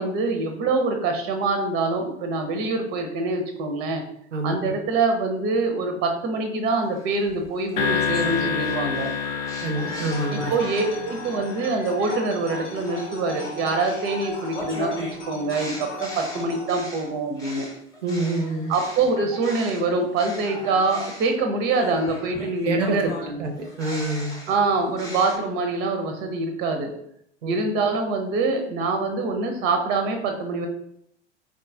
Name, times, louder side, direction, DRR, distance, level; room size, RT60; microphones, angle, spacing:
voice 1, 0.0-4.0 4.4-9.1 10.3-17.7 18.7-23.4 24.5-26.9 27.5-30.7, right 3 dB, 30° right, 5 dB, 0.5 m, -25 dB
voice 2, 4.3-4.7 9.6-10.5 18.0-18.7 22.6-23.0 23.4-24.4 27.4-27.5, right 2 dB, 85° right, 4 dB, 0.5 m, -26 dB
sound 1, 7.0-11.1 11.5-19.9 20.2-25.4, left 1 dB, 10° left, 0.7 m, -39 dB
sound 2, 7.8-12.2, left 6 dB, 45° left, 0.5 m, -28 dB
sound 3, 10.1-16.7, left 2 dB, 80° left, 0.8 m, -37 dB
3.8 x 2.3 x 2.5 m, 0.72 s
figure-of-eight pair, 90°, 35 cm